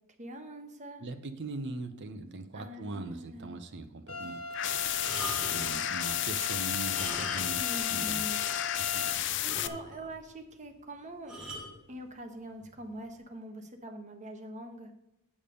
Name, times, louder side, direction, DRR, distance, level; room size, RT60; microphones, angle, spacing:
voice 1, 0.2-1.1 2.5-3.5 7.5-8.5 9.0-11.4 11.9-15.0, right 1 dB, 35° right, 5 dB, 1.2 m, -44 dB
voice 2, 1.0-9.2, right 2 dB, 55° right, 7 dB, 0.8 m, -42 dB
sound 1, 4.1-9.1, left 3 dB, 75° left, 1.4 m, -39 dB
sound 2, 4.5-9.7, left 12 dB, 55° left, 0.5 m, -32 dB
sound 3, 5.0-5.8 6.7-7.7 8.0-8.1 8.7-8.8 9.0-9.1 9.5-10.1 11.3-11.7 12.6-12.8, equal, 5° right, 2.7 m, -41 dB
8.5 x 7.3 x 5.2 m, 0.91 s
head